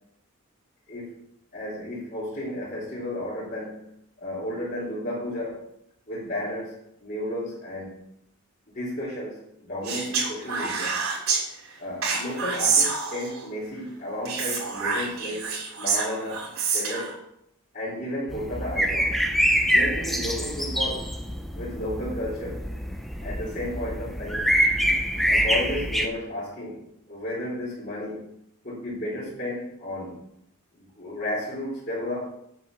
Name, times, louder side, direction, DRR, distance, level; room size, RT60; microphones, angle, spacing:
voice 1, 1.5-3.8 4.2-5.6 6.1-8.0 8.7-11.0 11.8-15.5 15.8-16.4 16.7-17.2 17.7-19.2 19.6-21.1 21.6-22.6 23.2-24.5 25.2-26.8 27.1-28.2 28.6-30.2 30.7-32.3, left 1 dB, 40° left, -9 dB, 3.6 m, -33 dB
Speech, 9.8-11.4 12.0-13.4 14.2-17.1, right 5 dB, 85° right, 3.3 m, -27 dB
sound 1, 18.3-26.1, equal, ahead, 0.8 m, -25 dB
8.0 x 8.0 x 6.2 m, 0.77 s
head